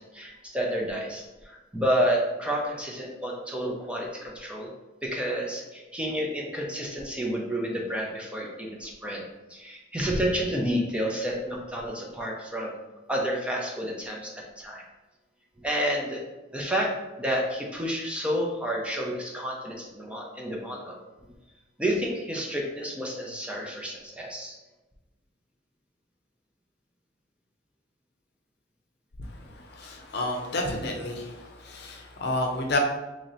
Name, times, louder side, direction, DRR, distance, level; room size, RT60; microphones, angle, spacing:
voice 1, 0.0-4.7 5.0-9.2 9.5-12.8 13.1-14.8 15.6-16.2 16.5-16.9 17.2-21.0 21.8-24.6, equal, 5° right, -2 dB, 0.5 m, -30 dB
voice 2, 29.2-32.8, left 2 dB, 60° left, 2 dB, 0.6 m, -31 dB
3.1 x 2.8 x 3.9 m, 1.1 s
head